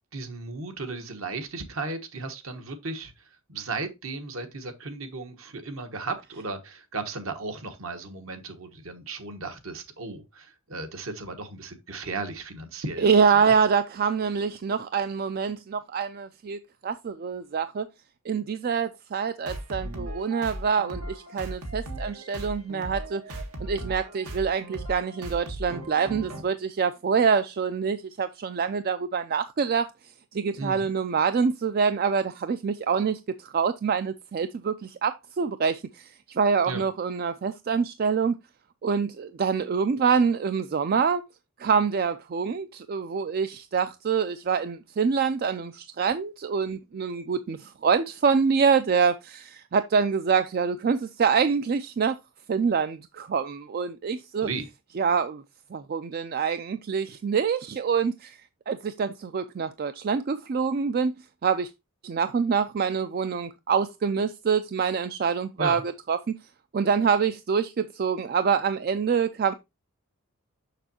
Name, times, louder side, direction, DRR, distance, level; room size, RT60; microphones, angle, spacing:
voice 1, 0.1-13.5 30.6-30.9 36.6-36.8 54.4-54.7 65.6-65.8, right 3 dB, 65° right, 1.2 m, -35 dB
voice 2, 13.0-17.9 18.3-38.4 38.8-41.2 41.6-52.2 52.5-54.5 55.0-55.4 55.7-61.1 61.4-61.7 62.0-65.8 66.1-66.3 66.7-69.5, right 6 dB, 45° right, 0.3 m, -26 dB
sound 1, 19.4-26.4, right 1 dB, 85° right, 1.6 m, -37 dB
6.6 x 6.2 x 2.8 m
head